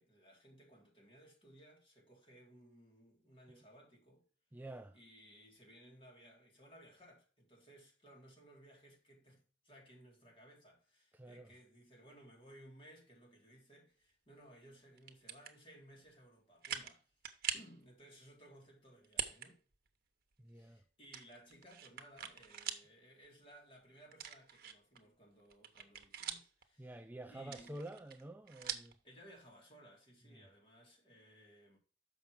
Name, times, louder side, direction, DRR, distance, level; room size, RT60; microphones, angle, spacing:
voice 1, 0.0-4.3 4.9-17.2 17.5-19.6 20.5-27.0 27.2-27.8 29.0-31.8, equal, 30° left, 3.6 m, -60 dB
voice 2, 4.5-5.0 11.1-11.5 20.4-20.8 26.8-29.0 30.3-30.4, right 1 dB, 10° right, 0.5 m, -49 dB
sound 1, 15.0-15.5 16.1-16.2 16.6-17.0 17.2-17.7 19.0-19.5 19.9-20.0 21.1-22.9 23.2-23.3 24.1-25.0 25.4-26.6 27.4-28.9, right 8 dB, 55° right, 1.1 m, -43 dB
7.1 x 5.9 x 5.0 m
head